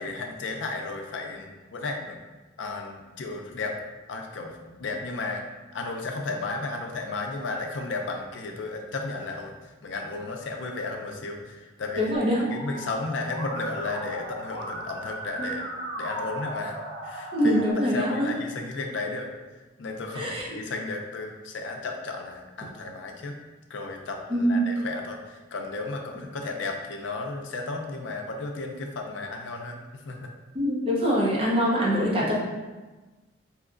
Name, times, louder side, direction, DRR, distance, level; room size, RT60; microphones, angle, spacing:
voice 1, 0.0-2.2 2.6-3.7 4.1-5.4 5.7-12.1 12.5-15.6 16.0-16.8 17.0-19.3 19.8-23.4 23.7-29.8 30.0-30.3, left 3 dB, 90° left, 3 dB, 0.5 m, -34 dB
voice 2, 12.0-12.4 15.4-15.5 17.3-18.3 20.1-20.5 24.3-24.6 30.5-32.3, equal, 30° right, -5 dB, 0.8 m, -24 dB
Musical instrument, 12.1-17.7, right 1 dB, 15° left, 0.9 m, -36 dB
4.8 x 2.8 x 2.5 m, 1.2 s
head